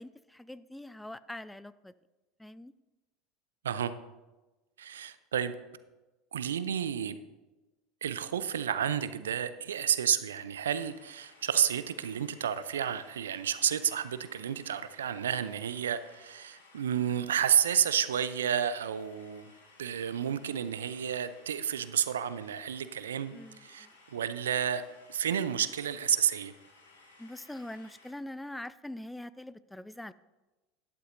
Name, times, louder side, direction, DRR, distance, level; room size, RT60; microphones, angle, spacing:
voice 1, 0.0-1.9 2.4-2.7 23.3-23.9 27.2-30.1, left 1 dB, 5° left, 0.4 m, -43 dB
voice 2, 4.8-5.6 6.3-7.2 8.0-19.5 19.8-24.8 25.1-26.5, right 9 dB, 75° right, 0.5 m, -31 dB
sound 1, 10.8-28.1, left 3 dB, 80° left, 1.8 m, -59 dB
12.0 x 11.0 x 2.6 m
figure-of-eight pair, 75°, 0 cm